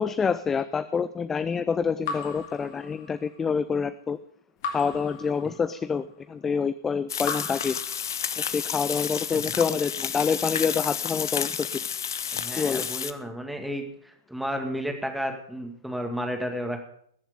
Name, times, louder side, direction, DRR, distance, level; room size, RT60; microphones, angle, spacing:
voice 1, 0.0-4.2 4.7-7.8 8.4-11.7 12.6-12.9, left 6 dB, 15° left, 13 dB, 0.4 m, -27 dB
Raindrop / Drip, 2.0-3.4 4.6-6.0 7.2-8.6, left 5 dB, 45° left, 2.2 m, -37 dB
sound 1, 7.1-13.1, left 8 dB, 60° left, 0.8 m, -31 dB
voice 2, 12.3-16.8, equal, ahead, 4 dB, 2.0 m, -32 dB
21.0 x 7.2 x 5.2 m, 0.67 s
figure-of-eight pair, 105°, 2 cm